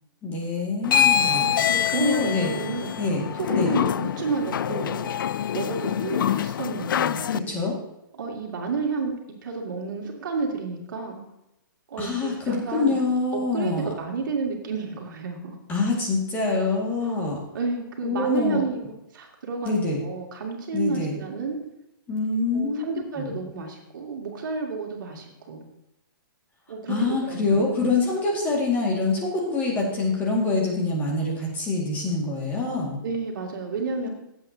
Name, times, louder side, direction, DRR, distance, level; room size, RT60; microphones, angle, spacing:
voice 1, 0.2-1.5 1.9-2.5 3.0-3.3 3.6-3.7 7.3-7.8 12.0-13.9 15.7-17.4 18.0-18.6 19.6-20.0 20.7-21.2 22.1-23.4 26.9-33.0, left 3 dB, 15° left, -3 dB, 2.1 m, -25 dB
sound 1, 0.8-7.4, left 9 dB, 70° left, 0.4 m, -25 dB
voice 2, 1.3-2.9 3.3-5.1 5.5-7.3 8.1-9.1 9.4-11.2 11.9-13.0 13.3-15.6 17.0-17.1 17.5-18.8 19.1-19.8 20.0-21.6 22.5-25.6 26.7-27.6 33.0-34.1, right 4 dB, 60° right, 0 dB, 2.7 m, -31 dB
16.5 x 8.2 x 2.9 m, 0.86 s
hypercardioid pair, 160°, 12 cm